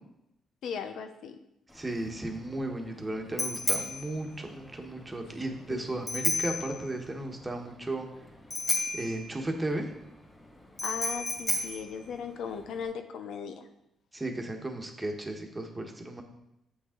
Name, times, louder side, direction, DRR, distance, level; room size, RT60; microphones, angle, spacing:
voice 1, 0.6-1.4 5.7-6.0 10.8-13.6, left 6 dB, 75° left, 7 dB, 0.6 m, -37 dB
Bicycle bell, 1.7-12.9, left 2 dB, 15° left, 2.2 m, -34 dB
voice 2, 1.7-8.1 8.9-9.9 14.1-16.2, right 1 dB, 20° right, 3 dB, 1.2 m, -35 dB
7.8 x 6.2 x 3.8 m, 0.83 s
cardioid pair, 90°, 0 cm